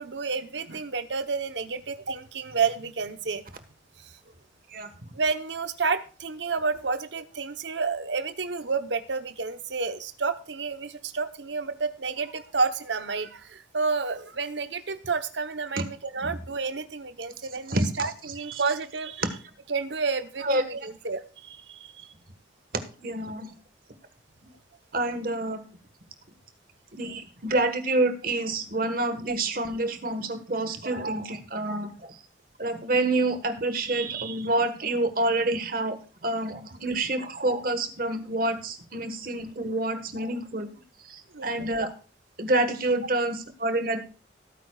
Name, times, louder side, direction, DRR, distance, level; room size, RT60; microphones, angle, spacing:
voice 1, 0.0-3.4 4.0-4.1 5.1-19.3 19.7-22.1 41.3-41.6, right 4 dB, 70° right, 10 dB, 1.0 m, -30 dB
voice 2, 23.0-23.5 24.9-25.6 26.9-32.2 32.6-36.0 36.2-40.7 41.0-41.9 42.4-44.0, right 2 dB, 50° right, 8 dB, 1.5 m, -27 dB
17.0 x 9.3 x 2.4 m, 0.36 s
head